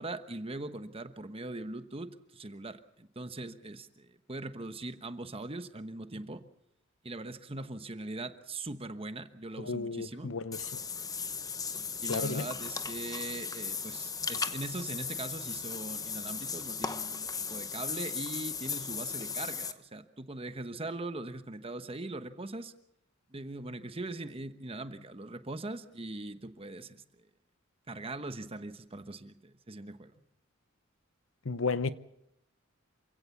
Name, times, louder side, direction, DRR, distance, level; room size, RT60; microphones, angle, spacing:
voice 1, 0.0-6.4 7.0-10.3 11.7-22.7 23.3-27.0 27.9-30.1, right 2 dB, 25° right, 1.1 m, -41 dB
voice 2, 9.6-10.8 12.1-12.5 31.4-31.9, left 4 dB, 65° left, 0.8 m, -33 dB
Water / Bathtub (filling or washing), 10.5-19.7, left 5 dB, 15° left, 0.9 m, -37 dB
27.5 x 16.5 x 7.2 m
head